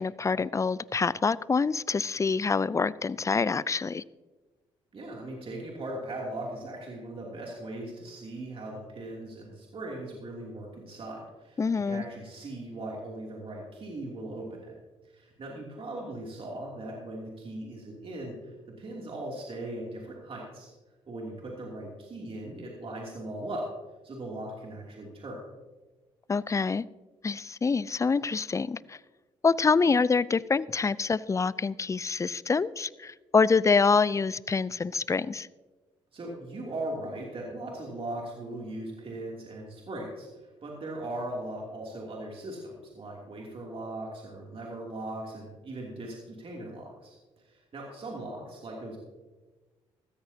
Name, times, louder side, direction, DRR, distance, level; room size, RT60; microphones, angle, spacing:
voice 1, 0.0-4.0 11.6-12.0 26.3-26.8 27.2-29.0 29.4-35.5, left 4 dB, 25° left, 20 dB, 0.4 m, -26 dB
voice 2, 4.9-14.7 15.0-20.7 21.1-23.7 24.0-25.4 36.1-49.0, right 1 dB, 45° right, -2 dB, 2.9 m, -39 dB
15.5 x 13.5 x 2.8 m, 1.2 s
hypercardioid pair, 50°, 12 cm